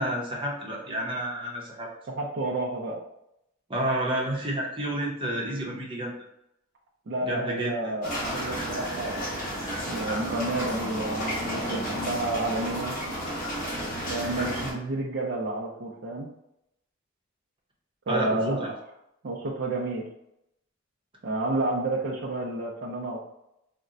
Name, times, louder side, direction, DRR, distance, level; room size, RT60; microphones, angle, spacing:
voice 1, 0.0-1.9 3.7-6.2 7.2-8.0 18.1-18.7, right 1 dB, 25° right, -3 dB, 0.8 m, -30 dB
voice 2, 2.2-3.0 7.1-9.3 9.9-12.9 14.1-16.3 18.1-18.8 19.2-20.0 21.2-23.2, right 2 dB, 60° right, -4 dB, 0.5 m, -30 dB
sound 1, 8.0-14.7, equal, 45° left, 1.3 m, -32 dB
4.1 x 2.1 x 2.5 m, 0.81 s
head